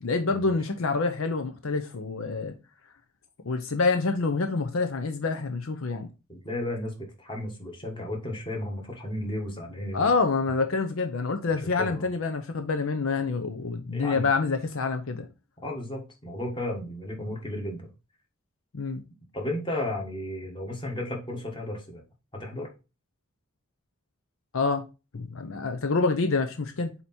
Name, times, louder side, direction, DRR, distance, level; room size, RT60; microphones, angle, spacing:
voice 1, 0.0-2.5 3.4-6.1 9.9-15.3 18.7-19.0 24.5-24.8 25.1-26.9, left 4 dB, 70° left, 0.7 m, -27 dB
voice 2, 6.3-10.1 11.8-12.1 13.9-14.3 15.6-17.8 19.3-22.0 22.3-22.7, left 1 dB, 25° left, 1.6 m, -34 dB
8.0 x 2.9 x 4.3 m
head